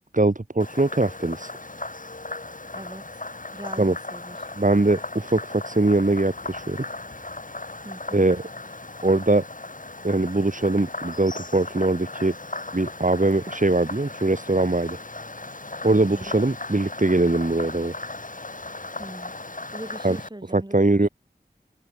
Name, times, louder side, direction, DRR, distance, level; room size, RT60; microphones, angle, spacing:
voice 1, 0.1-1.5 3.8-3.9 4.6-6.8 8.1-8.4 9.0-9.4 10.0-12.3 12.7-15.0 15.8-17.9 20.0-20.2 20.5-21.1, right 2 dB, 50° right, 2.6 m, -22 dB
Frog, 0.6-20.3, left 2 dB, 50° left, 1.9 m, -37 dB
voice 2, 3.5-4.5 7.8-8.3 15.8-16.3 18.9-19.3 19.7-20.9, right 1 dB, 25° right, 4.6 m, -40 dB
wide cardioid pair, 45°, 17 cm